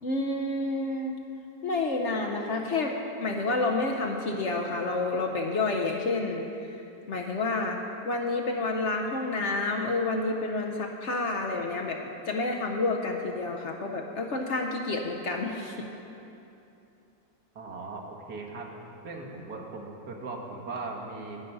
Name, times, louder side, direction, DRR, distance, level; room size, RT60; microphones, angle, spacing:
voice 1, 0.0-1.2 1.6-2.9 3.2-6.4 7.1-7.8 8.0-12.0 12.3-15.9, left 3 dB, 55° left, 1 dB, 0.9 m, -29 dB
voice 2, 17.6-18.7 19.0-21.4, right 3 dB, 75° right, -1 dB, 1.8 m, -38 dB
10.5 x 9.9 x 5.4 m, 2.8 s
omnidirectional pair, 1.7 m